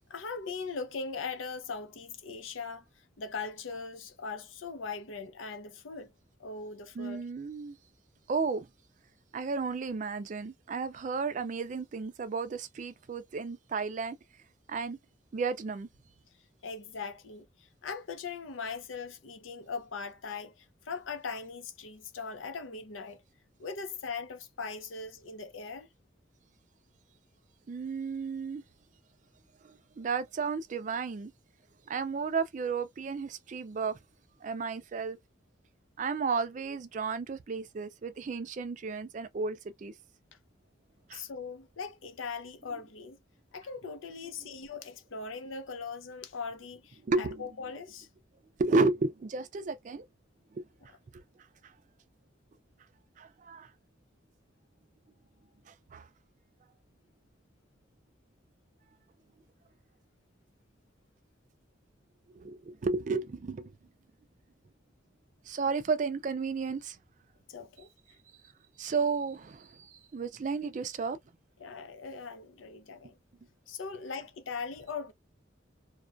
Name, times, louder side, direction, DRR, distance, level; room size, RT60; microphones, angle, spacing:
voice 1, 0.0-2.8 3.2-6.1 6.4-7.2 16.6-23.2 23.6-25.9 41.1-43.2 43.5-48.1 67.5-67.9 71.6-73.2 73.7-75.1, left 5 dB, 90° left, 0.6 m, -40 dB
voice 2, 7.0-7.8 8.3-8.7 9.3-14.2 14.7-15.0 15.3-15.9 27.7-28.6 29.6-31.3 31.9-34.0 34.4-35.2 36.0-39.9 41.1-41.2 47.0-47.5 48.6-50.1 50.5-50.6 53.2-53.7 55.7-56.1 62.4-63.7 65.5-67.0 68.8-71.2, right 4 dB, 40° right, 0.3 m, -33 dB
2.3 x 2.1 x 2.5 m
head